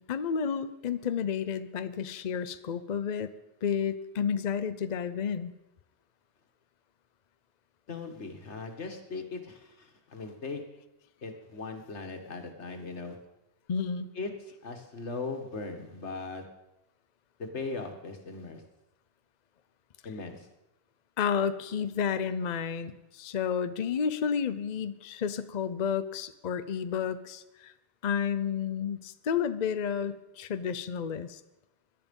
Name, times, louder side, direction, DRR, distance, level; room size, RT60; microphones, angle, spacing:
voice 1, 0.0-3.3 3.6-5.5 13.7-14.1 21.2-27.7 28.0-31.4, left 7 dB, 45° left, 12 dB, 0.7 m, -31 dB
voice 2, 7.9-10.6 11.2-13.2 14.2-16.5 17.4-18.6 20.0-20.5, left 3 dB, 90° left, 5 dB, 2.0 m, -39 dB
17.5 x 11.5 x 5.4 m, 0.94 s
omnidirectional pair, 1.1 m